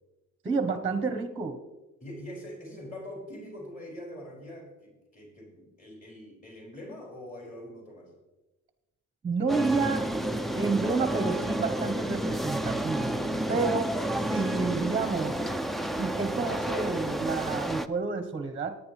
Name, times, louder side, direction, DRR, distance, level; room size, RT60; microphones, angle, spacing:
voice 1, 0.4-1.6 9.2-10.1 10.5-13.1 13.5-13.8 14.3-15.4 15.9-18.8, right 4 dB, 20° right, 8 dB, 0.9 m, -29 dB
voice 2, 2.0-8.1 13.3-13.7, left 1 dB, 25° left, -3 dB, 5.3 m, -43 dB
sound 1, 9.5-17.9, right 1 dB, ahead, 0.4 m, -30 dB
19.0 x 9.7 x 3.2 m, 1.1 s
cardioid pair, 140°, 30 cm